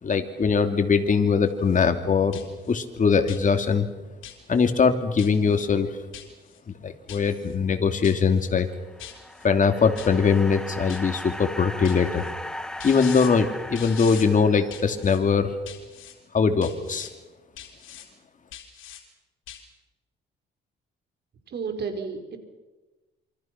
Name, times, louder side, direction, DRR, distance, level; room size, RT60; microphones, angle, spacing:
voice 1, 0.0-2.4 2.7-3.9 4.5-5.9 6.8-8.7 9.4-12.2 12.8-15.5 16.3-17.1, left 5 dB, 40° left, 6 dB, 2.9 m, -21 dB
sound 1, 1.5-1.8 2.3-2.8 3.3-3.7 4.2-4.7 5.2-5.6 6.1-6.6 7.1-7.5 8.0-8.5 9.0-9.5 9.9-10.4 10.9-11.4 11.8-12.3 12.8-13.3 13.7-14.3 14.7-15.2 15.6-16.1 16.6-17.1 17.6-18.1 18.5-19.0 19.5-19.6, left 10 dB, 80° left, 4.2 m, -42 dB
sound 2, 8.7-15.1, left 1 dB, 5° left, 2.0 m, -38 dB
voice 2, 21.5-22.4, right 5 dB, 55° right, 5 dB, 4.9 m, -31 dB
27.5 x 25.0 x 6.1 m, 1.1 s
cardioid pair, 90°, 20 cm